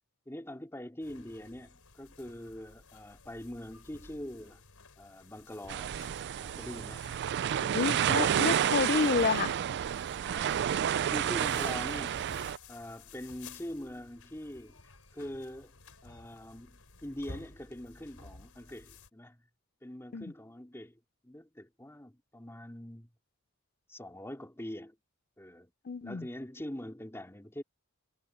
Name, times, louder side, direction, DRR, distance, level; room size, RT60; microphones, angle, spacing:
voice 1, 0.3-4.6 5.0-5.9 6.4-7.1 7.5-8.0 10.2-10.8 11.1-12.2 12.7-14.8 15.1-15.8 16.0-19.4 19.8-23.1 23.9-25.0 25.4-25.7 26.0-27.6, left 1 dB, 10° left, 2.7 m, -43 dB
sound 1, 1.0-19.1, left 3 dB, 85° left, 4.1 m, -54 dB
sound 2, 5.7-12.6, right 9 dB, 50° right, 0.3 m, -30 dB
voice 2, 7.7-9.5 20.1-20.3 25.9-26.3, left 5 dB, 40° left, 0.5 m, -29 dB
head